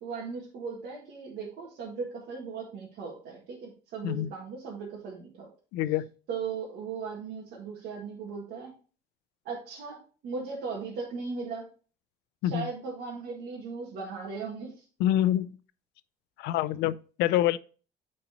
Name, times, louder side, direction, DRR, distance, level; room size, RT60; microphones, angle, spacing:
voice 1, 0.0-5.5 6.3-8.7 9.5-11.7 12.4-14.8, right 5 dB, 75° right, 1.8 m, -37 dB
voice 2, 5.7-6.1 12.4-12.7 15.0-15.6 16.4-17.6, left 12 dB, 90° left, 0.5 m, -26 dB
9.3 x 4.3 x 3.0 m
cardioid pair, 110°, 17 cm